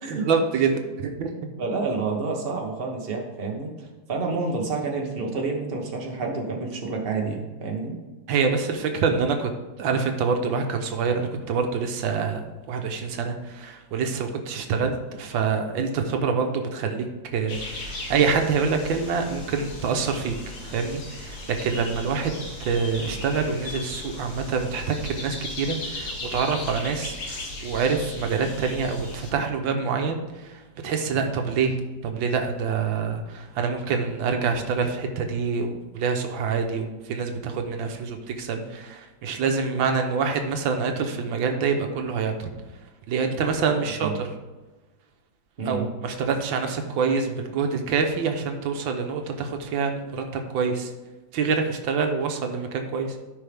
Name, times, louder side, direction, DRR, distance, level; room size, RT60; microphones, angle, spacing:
voice 1, 0.1-1.3 8.3-9.5 9.8-12.4 12.7-17.1 17.3-20.3 20.6-31.8 32.0-42.5 43.1-44.3 45.6-50.9 51.3-53.1, right 5 dB, 90° right, 4 dB, 1.7 m, -26 dB
voice 2, 1.6-8.0 43.7-44.2 45.6-45.9, right 4 dB, 30° right, 0 dB, 1.4 m, -29 dB
sound 1, 17.5-29.3, left 2 dB, 55° left, 1.9 m, -37 dB
13.5 x 5.6 x 3.5 m, 1.2 s
omnidirectional pair, 2.1 m